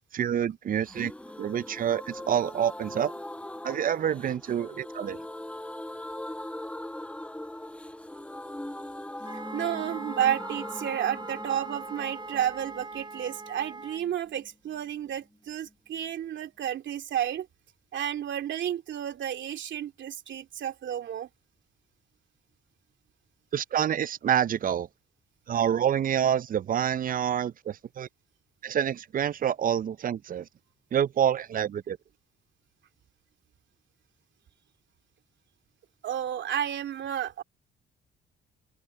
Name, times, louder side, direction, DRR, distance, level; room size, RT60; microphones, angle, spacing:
voice 1, 0.1-1.1 1.4-3.1 3.6-5.2 23.5-24.9 25.5-28.1 28.6-30.5 30.9-32.0, right 9 dB, 45° right, 0.5 m, -27 dB
sound 1, 0.9-14.5 14.7-14.8 15.1-15.2, left 1 dB, 5° left, 1.2 m, -41 dB
Wind instrument woodwind instrument, 9.2-14.0, right 3 dB, 20° right, 7.2 m, -41 dB
voice 2, 9.5-17.5 17.9-21.3 36.0-37.4, right 10 dB, 70° right, 3.1 m, -31 dB
cardioid pair, 90°, 20 cm